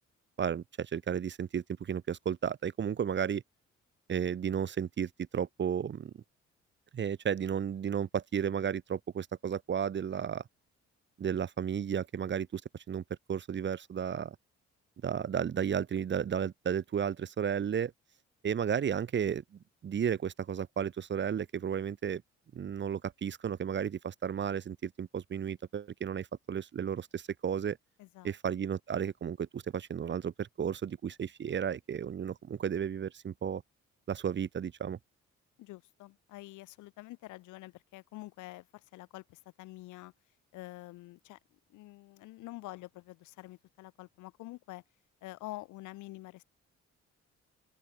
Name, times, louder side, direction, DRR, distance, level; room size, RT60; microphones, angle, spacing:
voice 1, 0.4-3.4 4.1-6.2 6.9-10.4 11.2-14.4 15.0-17.9 18.4-22.2 22.5-27.8 28.2-33.6 34.1-35.0, right 8 dB, 40° right, 0.7 m, -33 dB
voice 2, 28.0-28.3 35.6-40.1 40.5-44.8 45.2-46.4, left 19 dB, 85° left, 1.6 m, -47 dB
open air
supercardioid pair, 60°, 29 cm